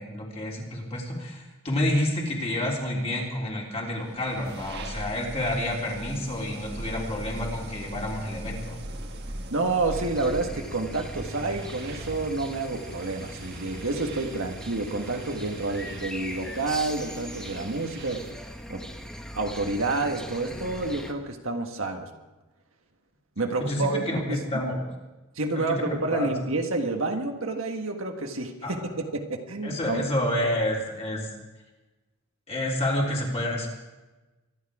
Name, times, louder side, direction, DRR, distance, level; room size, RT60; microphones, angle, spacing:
voice 1, 0.0-8.8 23.6-24.8 25.5-26.4 28.6-28.8 29.6-31.3 32.5-33.7, left 1 dB, 30° left, -2 dB, 3.5 m, -29 dB
sound 1, 3.8-18.5, right 1 dB, 50° right, 1.6 m, -41 dB
voice 2, 9.5-18.2 18.7-18.8 19.3-22.1 23.4-24.4 25.3-30.0, right 3 dB, 65° right, 4 dB, 1.5 m, -29 dB
sound 2, 9.9-21.1, equal, 5° left, 1.0 m, -40 dB
24.0 x 11.0 x 4.9 m, 1.1 s
head